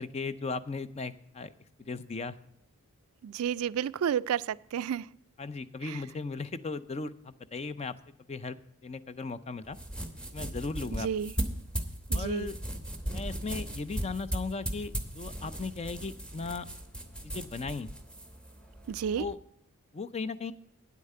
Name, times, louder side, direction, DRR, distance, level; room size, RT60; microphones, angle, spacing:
voice 1, 0.0-1.5 1.8-2.4 5.4-7.9 8.3-9.8 10.3-11.1 12.1-12.6 13.1-16.7 17.2-17.9 19.2-19.4 19.9-20.5, left 4 dB, 30° left, 14 dB, 0.4 m, -37 dB
voice 2, 3.2-5.1 5.9-6.0 11.0-11.3 12.1-12.5 18.9-19.2, right 8 dB, 75° right, 18 dB, 0.3 m, -31 dB
sound 1, 9.6-19.3, right 1 dB, 5° left, 0.9 m, -37 dB
9.5 x 8.4 x 5.4 m, 0.72 s
head